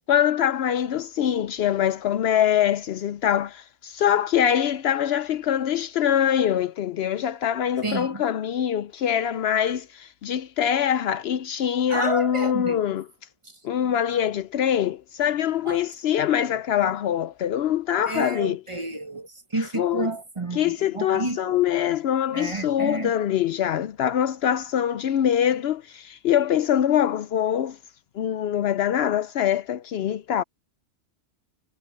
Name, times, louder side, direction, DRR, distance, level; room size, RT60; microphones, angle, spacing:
voice 1, 0.1-13.1 13.6-18.6 19.7-20.1 20.5-27.8 28.1-30.4, left 10 dB, 70° left, 0.8 m, -24 dB
voice 2, 7.8-8.2 11.9-12.9 15.7-15.8 18.1-21.6 22.3-23.1, right 2 dB, 25° right, 1.3 m, -30 dB
omnidirectional pair, 1.2 m